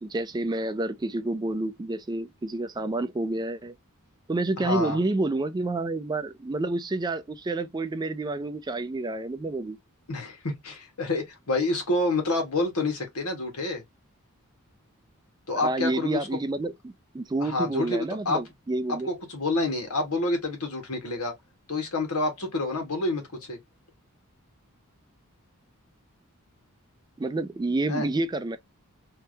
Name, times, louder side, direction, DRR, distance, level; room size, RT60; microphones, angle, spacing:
voice 1, 0.0-3.7 4.3-9.8 15.5-19.1 27.2-28.6, right 2 dB, 20° right, 0.4 m, -29 dB
voice 2, 4.6-5.0 10.1-13.8 15.5-16.3 17.4-18.4 18.9-21.3 21.7-23.6 27.9-28.1, left 2 dB, 90° left, 1.5 m, -28 dB
3.4 x 2.8 x 2.7 m
head